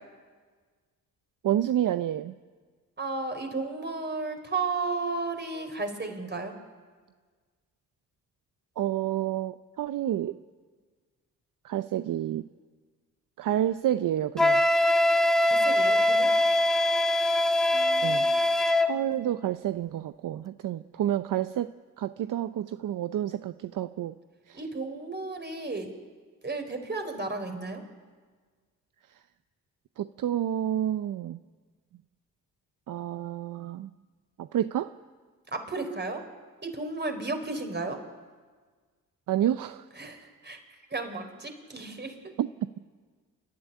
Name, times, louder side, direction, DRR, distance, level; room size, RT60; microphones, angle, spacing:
voice 1, 1.4-2.3 8.8-10.4 11.6-12.5 13.4-14.6 18.0-18.3 18.8-21.7 22.0-24.1 24.5-24.6 30.0-31.4 32.9-33.9 34.4-34.9 39.3-39.9 42.4-42.5, right 11 dB, 65° right, 11 dB, 0.6 m, -29 dB
voice 2, 3.0-6.5 15.4-16.3 17.7-18.4 24.5-25.9 26.4-27.8 35.5-36.3 36.6-38.0 40.0-40.6 40.9-42.3, right 3 dB, 30° right, 5 dB, 4.1 m, -34 dB
Wind instrument woodwind instrument, 14.4-18.9, left 1 dB, ahead, 1.9 m, -22 dB
28.0 x 11.5 x 10.0 m, 1.5 s
cardioid pair, 65°, 35 cm